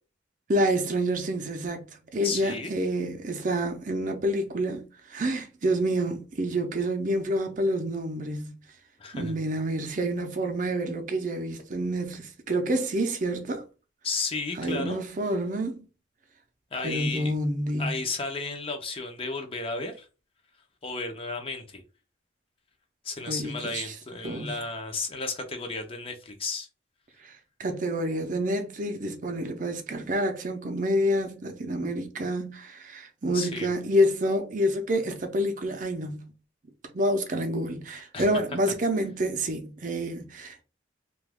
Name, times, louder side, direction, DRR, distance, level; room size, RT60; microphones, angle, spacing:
voice 1, 0.5-8.5 9.1-13.6 14.6-15.8 16.8-18.0 23.3-23.9 24.2-24.6 27.2-36.2 36.9-40.6, equal, 40° right, 0.5 m, -28 dB
voice 2, 2.2-2.7 9.0-9.3 14.0-15.0 16.7-17.3 17.8-20.1 20.8-21.8 23.0-26.7 33.3-33.7 38.1-38.3, left 3 dB, 30° left, 0.5 m, -33 dB
2.8 x 2.3 x 3.4 m
head